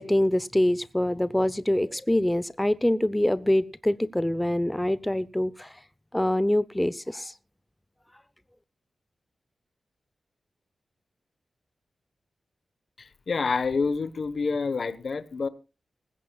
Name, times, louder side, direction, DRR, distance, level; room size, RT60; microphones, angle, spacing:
voice 1, 0.0-5.7 6.1-7.3, left 1 dB, 10° left, 0.6 m, -25 dB
voice 2, 13.0-15.5, left 4 dB, 55° left, 1.1 m, -28 dB
20.0 x 16.0 x 2.3 m
wide cardioid pair, 130°, 0 cm